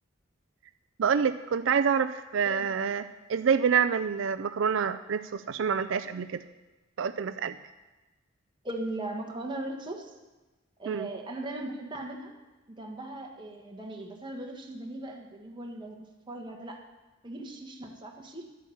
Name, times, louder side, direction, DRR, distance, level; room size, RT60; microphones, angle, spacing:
voice 1, 1.0-3.0 3.3-6.4 7.0-7.6 10.9-11.1, right 6 dB, 80° right, 11 dB, 0.4 m, -27 dB
voice 2, 8.6-10.1 10.8-12.3 12.7-16.0 16.3-16.8 17.2-18.4, right 1 dB, 25° right, 1 dB, 1.5 m, -38 dB
11.5 x 8.3 x 7.1 m, 1.1 s
head